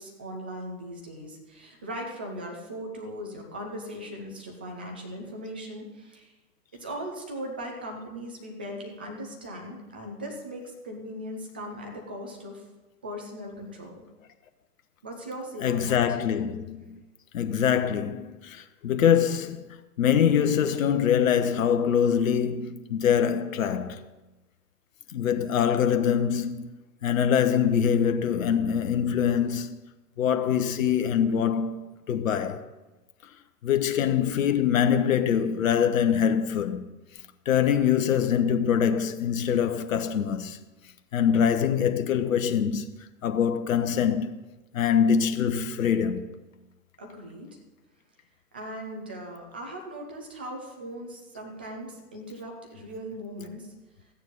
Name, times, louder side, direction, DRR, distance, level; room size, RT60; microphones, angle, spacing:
voice 1, 0.0-6.3 6.7-12.6 13.0-14.1 15.0-16.0 47.0-47.6 48.5-53.7, equal, 10° right, 0.3 m, -39 dB
voice 2, 15.6-16.9 17.3-19.6 20.0-24.0 25.1-26.7 27.0-29.7 30.2-31.8 32.1-32.6 33.6-36.9 37.5-40.6 41.1-42.8 43.2-44.4 44.7-46.3, left 8 dB, 55° left, 1.1 m, -24 dB
14.0 x 9.3 x 5.3 m
figure-of-eight pair, 120°, 47 cm